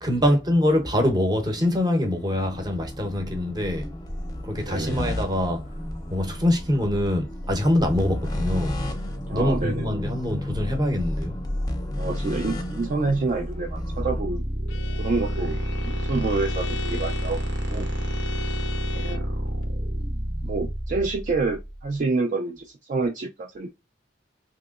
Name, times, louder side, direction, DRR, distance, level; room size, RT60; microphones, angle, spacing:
voice 1, 0.0-3.9 4.4-5.7 6.1-8.8 9.3-11.4, left 1 dB, 20° right, 0.8 m, -24 dB
sound 1, 1.5-14.2, left 1 dB, 20° left, 0.6 m, -32 dB
voice 2, 4.7-5.0 9.3-9.9 12.0-14.5 15.0-17.9 18.9-19.3 20.4-23.7, right 3 dB, 45° right, 0.4 m, -28 dB
sound 2, 13.0-21.9, equal, 70° right, 0.9 m, -29 dB
Bowed string instrument, 14.7-19.4, left 4 dB, 80° left, 0.3 m, -39 dB
3.0 x 2.9 x 2.3 m
head